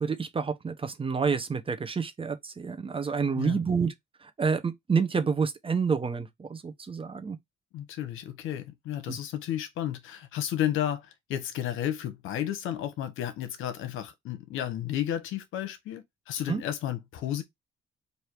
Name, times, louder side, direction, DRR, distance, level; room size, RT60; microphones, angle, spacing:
voice 1, 0.0-3.9 4.2-7.4 16.5-16.6, right 5 dB, 25° right, 0.8 m, -28 dB
voice 2, 7.7-17.4, left 11 dB, 90° left, 0.9 m, -32 dB
3.4 x 2.7 x 4.5 m
cardioid pair, 90°, 20 cm